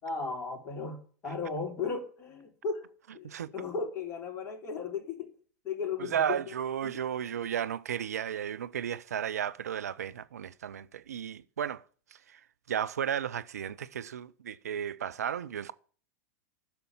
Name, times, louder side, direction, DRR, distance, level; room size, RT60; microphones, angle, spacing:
voice 1, 0.0-2.9 3.1-5.3 5.6-6.4 6.8-7.0, left 4 dB, 30° left, 3.7 m, -36 dB
voice 2, 6.0-11.8 12.3-12.4 12.7-15.7, right 9 dB, 75° right, 0.6 m, -34 dB
11.5 x 6.9 x 9.7 m
figure-of-eight pair, 95°, 9 cm